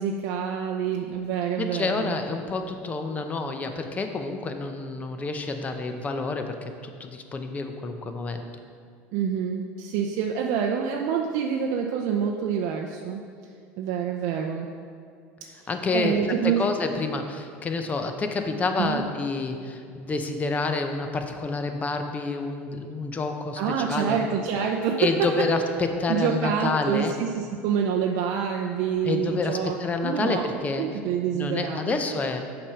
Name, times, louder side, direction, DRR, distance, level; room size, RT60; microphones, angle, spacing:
voice 1, 0.0-2.2 9.1-13.2 13.8-14.7 15.6-16.6 18.8-19.0 23.6-25.5 26.1-29.7 30.0-32.0, right 7 dB, 65° right, 1 dB, 0.5 m, -27 dB
voice 2, 1.6-8.4 15.7-16.2 16.4-24.2 25.0-27.1 29.0-31.0 31.3-32.5, left 3 dB, 25° left, 6 dB, 0.7 m, -28 dB
7.1 x 4.9 x 5.8 m, 2.3 s
supercardioid pair, 120°, 6 cm